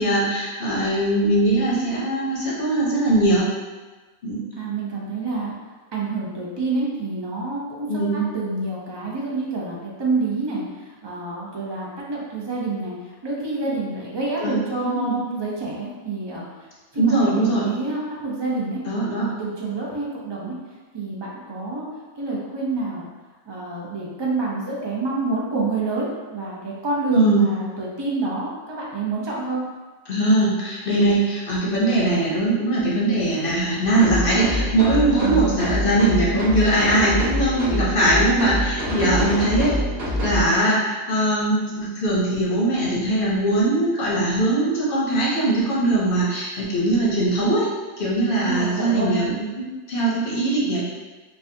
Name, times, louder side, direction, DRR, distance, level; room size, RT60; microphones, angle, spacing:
voice 1, 0.0-3.5 4.2-4.4 7.9-8.2 14.4-15.1 17.0-17.7 18.9-19.3 27.1-27.5 30.1-39.7 40.2-47.7 48.0-50.8, right 1 dB, 45° left, -6 dB, 0.8 m, -21 dB
voice 2, 4.6-5.5 5.9-12.9 13.2-16.4 16.9-18.8 19.3-20.5 20.9-21.9 22.2-23.1 23.5-29.6 35.0-35.5 38.9-39.2 48.3-49.2, right 3 dB, 45° right, -5 dB, 0.3 m, -27 dB
sound 1, 34.0-40.4, left 1 dB, 70° right, 1.5 m, -25 dB
4.7 x 2.4 x 2.7 m, 1.3 s
omnidirectional pair, 1.5 m